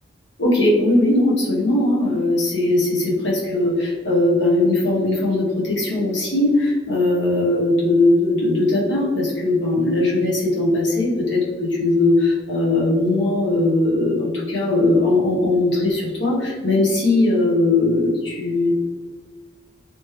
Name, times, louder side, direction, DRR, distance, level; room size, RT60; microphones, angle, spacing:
voice 1, 0.4-18.7, left 2 dB, 70° left, -5 dB, 1.2 m, -19 dB
3.3 x 3.1 x 3.2 m, 1.5 s
head